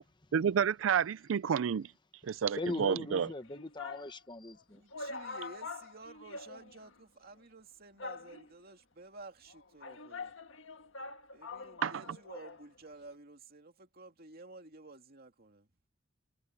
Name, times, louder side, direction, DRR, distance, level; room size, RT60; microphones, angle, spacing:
voice 1, 0.3-1.9 2.3-3.3 11.8-12.0, right 7 dB, 85° right, 0.4 m, -30 dB
voice 2, 2.2-4.8, left 2 dB, 25° left, 1.0 m, -40 dB
sound 1, 3.2-4.1 4.6-4.7 4.9-7.0 7.2-7.3 8.0-8.7 9.5-12.6 12.9-13.0, left 3 dB, 80° left, 1.6 m, -45 dB
voice 3, 4.7-10.3 11.3-15.7, right 2 dB, 50° right, 2.5 m, -52 dB
head